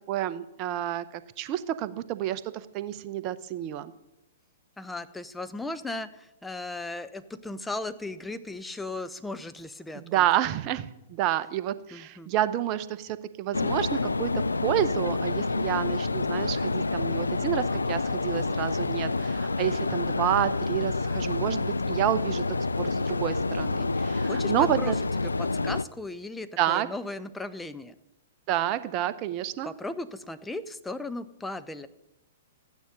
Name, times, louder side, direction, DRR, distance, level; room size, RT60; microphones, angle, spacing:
voice 1, 0.1-3.9 9.9-22.4 22.8-25.0 26.6-26.9 28.5-29.7, right 12 dB, 35° right, 13 dB, 0.7 m, -29 dB
voice 2, 4.8-10.2 11.9-12.3 24.0-24.9 25.2-27.9 29.6-31.9, left 2 dB, 5° left, 10 dB, 0.7 m, -37 dB
sound 1, 13.5-25.8, left 3 dB, 85° left, 0.4 m, -28 dB
13.5 x 9.4 x 5.3 m, 0.91 s
figure-of-eight pair, 110°, 0 cm